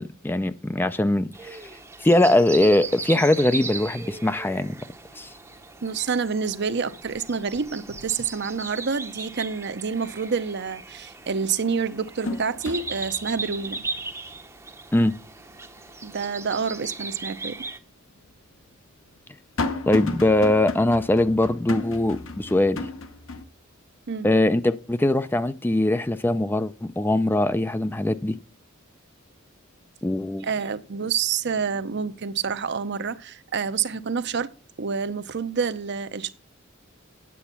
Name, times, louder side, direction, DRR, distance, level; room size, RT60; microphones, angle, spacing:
voice 1, 0.0-1.6 2.0-4.8 5.2-5.3 14.9-15.1 19.9-22.8 24.2-28.4 30.0-30.5, left 1 dB, 10° left, 0.4 m, -21 dB
sound 1, 1.3-17.8, right 4 dB, 15° right, 0.7 m, -38 dB
sound 2, 5.3-5.4 5.7-6.5 6.8-9.0 9.4-9.5 11.0-11.1 11.6-16.7 17.1-17.2 18.1-23.5, left 2 dB, 70° left, 1.0 m, -36 dB
voice 2, 5.8-13.8 16.0-17.7 24.1-24.3 30.4-34.5 34.8-36.3, right 5 dB, 55° right, 0.7 m, -28 dB
8.5 x 8.1 x 5.8 m
head